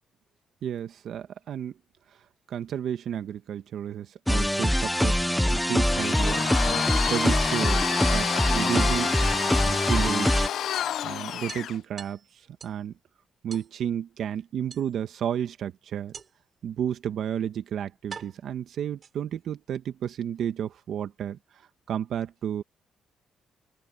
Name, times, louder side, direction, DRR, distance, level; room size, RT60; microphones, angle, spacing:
voice 1, 0.6-1.7 2.5-5.2 5.5-9.2 9.6-10.6 11.0-12.2 12.6-12.9 13.4-16.1 16.6-22.6, right 9 dB, 70° right, 1.4 m, -32 dB
sound 1, 4.3-10.5, equal, 5° left, 0.5 m, -24 dB
Domestic sounds home sounds, 5.9-11.8, left 10 dB, 70° left, 0.6 m, -30 dB
sound 2, 10.5-10.6 10.9-11.0 11.5-12.9 13.5-13.7 14.7-15.3 16.1-16.6 17.4-17.5 18.1-19.5, right 6 dB, 45° right, 5.8 m, -46 dB
open air
cardioid pair, 90°, 0 cm